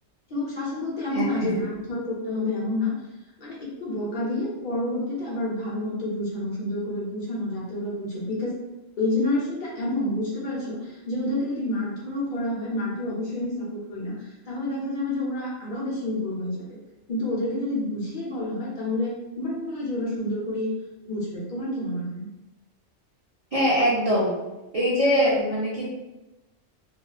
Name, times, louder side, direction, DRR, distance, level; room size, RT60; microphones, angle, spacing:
voice 1, 0.3-2.9 3.4-8.6 9.0-16.6 17.1-20.7 21.0-22.3, left 1 dB, 50° left, -6 dB, 0.7 m, -29 dB
voice 2, 23.5-24.3 24.7-25.8, equal, 60° right, -7 dB, 0.3 m, -22 dB
2.7 x 2.3 x 2.3 m, 1.0 s
omnidirectional pair, 1.3 m